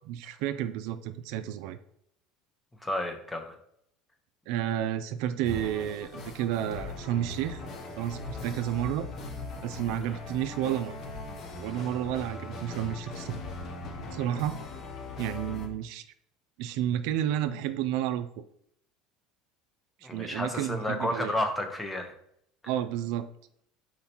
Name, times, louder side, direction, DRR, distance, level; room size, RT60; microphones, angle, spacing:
voice 1, 0.0-1.8 4.5-7.6 8.0-9.1 9.6-11.0 11.6-13.4 14.1-14.6 15.2-16.0 16.6-18.3 20.1-21.3 22.7-23.3, right 11 dB, 70° right, 10 dB, 0.3 m, -31 dB
voice 2, 2.8-3.6 10.0-10.2 20.0-22.1, left 1 dB, 10° left, 5 dB, 0.8 m, -31 dB
sound 1, 5.4-15.7, left 2 dB, 50° left, 0.8 m, -40 dB
4.3 x 3.9 x 2.9 m, 0.72 s
supercardioid pair, 105°, 0 cm